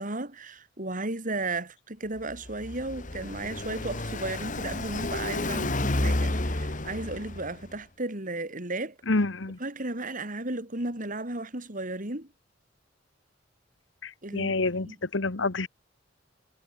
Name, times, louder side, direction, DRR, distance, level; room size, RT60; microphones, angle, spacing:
voice 1, 0.0-9.0 9.6-12.3 14.2-14.5 14.9-15.0, right 2 dB, 45° right, 4.2 m, -34 dB
Car passing by, 2.2-7.7, left 1 dB, 45° left, 2.5 m, -31 dB
voice 2, 9.1-9.6 14.0-15.7, left 3 dB, 85° left, 1.4 m, -28 dB
head